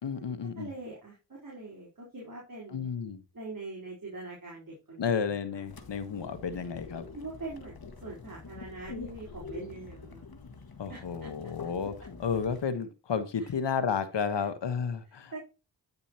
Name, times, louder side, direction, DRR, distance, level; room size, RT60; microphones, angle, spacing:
voice 1, 0.0-0.7 2.7-3.2 5.0-7.0 10.8-15.5, left 6 dB, 75° left, 1.3 m, -32 dB
voice 2, 0.6-2.9 3.3-5.1 7.1-10.2 10.9-11.3 13.4-13.5 14.4-14.5 15.3-15.5, right 2 dB, 50° right, 3.9 m, -43 dB
sound 1, 5.6-12.7, left 4 dB, 55° left, 1.7 m, -46 dB
10.0 x 6.8 x 2.9 m
cardioid pair, 45°, 43 cm